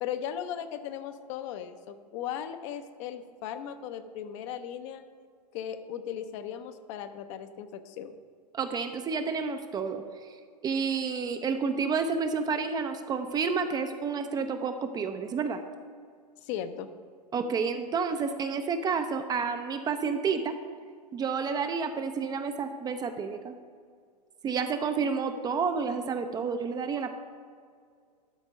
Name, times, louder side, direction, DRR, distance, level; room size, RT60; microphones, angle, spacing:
voice 1, 0.0-5.0 5.5-8.2 16.4-16.9, left 9 dB, 45° left, 9 dB, 0.7 m, -37 dB
voice 2, 8.5-10.0 10.6-15.6 17.3-20.6 21.1-23.5 24.4-27.2, right 5 dB, 20° right, 8 dB, 0.4 m, -30 dB
12.0 x 4.4 x 5.2 m, 2.1 s
hypercardioid pair, 105°, 21 cm